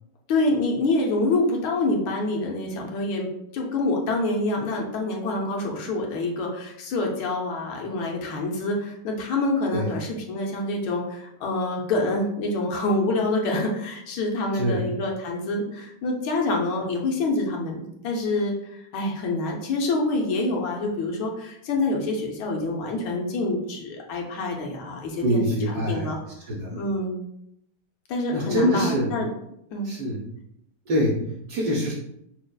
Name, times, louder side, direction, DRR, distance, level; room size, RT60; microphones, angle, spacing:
voice 1, 0.3-3.3 3.5-25.4 25.9-26.2 26.7-27.3 28.1-29.3 29.7-29.9, left 2 dB, 75° left, 0 dB, 1.5 m, -26 dB
voice 2, 25.2-26.1 26.5-26.8 28.3-29.2 29.8-30.2 30.9-31.9, equal, 60° right, -4 dB, 1.1 m, -25 dB
6.2 x 2.4 x 2.2 m, 0.77 s
omnidirectional pair, 2.3 m